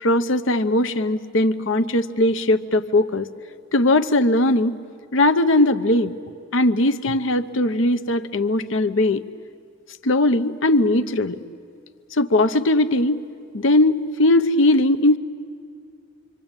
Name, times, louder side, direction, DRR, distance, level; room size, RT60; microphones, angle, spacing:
voice 1, 0.0-3.3 3.7-4.8 5.1-6.1 6.5-9.2 10.0-11.4 12.1-13.2 13.5-15.2, left 1 dB, 70° left, 10 dB, 0.8 m, -19 dB
26.0 x 25.5 x 9.0 m, 2.3 s
head